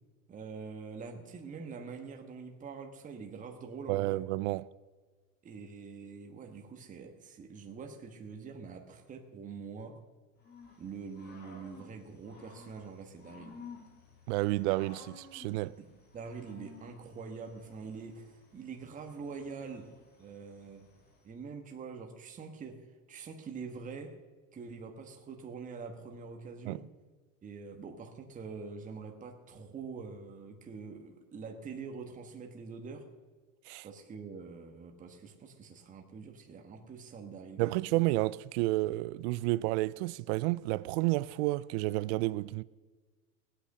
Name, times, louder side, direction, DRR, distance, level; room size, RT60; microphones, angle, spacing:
voice 1, 0.3-4.2 5.4-10.0 10.8-13.6 15.5-15.9 16.1-19.9 20.2-20.9 21.2-22.8 23.1-24.2 24.5-26.8 27.4-33.1 33.8-37.8, right 5 dB, 20° right, 1.3 m, -45 dB
voice 2, 3.9-4.7 14.3-15.7 26.7-26.8 33.7-33.9 37.6-42.6, right 19 dB, 55° right, 0.5 m, -30 dB
Growling / Cricket, 10.4-21.3, left 4 dB, 25° left, 2.6 m, -55 dB
18.0 x 8.7 x 6.5 m
supercardioid pair, 145°, 40 cm